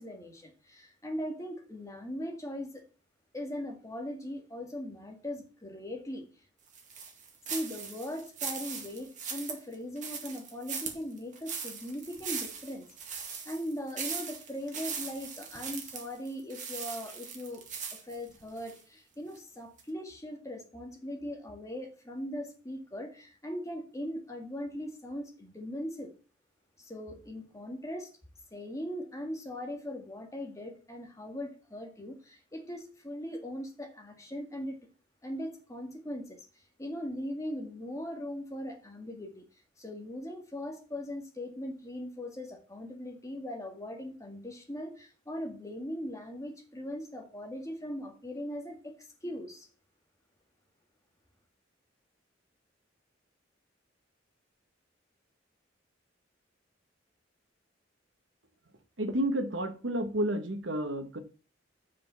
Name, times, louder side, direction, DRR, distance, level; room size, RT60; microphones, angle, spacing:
voice 1, 0.0-2.8 3.3-6.3 7.5-12.8 13.2-17.6 18.0-26.1 26.8-28.1 28.5-34.8 35.2-36.4 36.8-39.4 39.8-49.7, equal, 15° left, 1.8 m, -39 dB
sound 1, 6.7-18.8 19.3-19.4 19.8-19.9, right 6 dB, 40° right, 2.0 m, -39 dB
voice 2, 59.0-61.2, right 1 dB, 75° right, 1.2 m, -31 dB
6.8 x 5.1 x 6.8 m
head